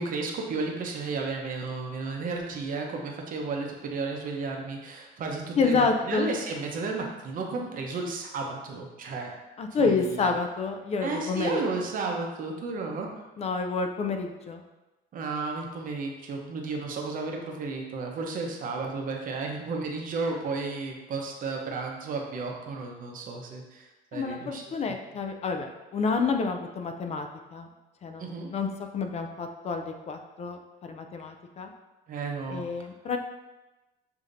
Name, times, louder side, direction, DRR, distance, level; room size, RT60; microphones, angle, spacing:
voice 1, 0.0-9.3 9.8-10.4 11.0-13.1 15.1-24.9 28.2-28.5 32.1-32.6, right 3 dB, 55° right, 1 dB, 0.8 m, -33 dB
voice 2, 5.6-6.3 9.6-11.6 13.4-14.6 24.1-27.7 28.0-31.7 32.5-33.2, left 4 dB, 40° left, 5 dB, 0.4 m, -29 dB
6.8 x 2.8 x 2.6 m, 1.1 s
cardioid pair, 110°, 17 cm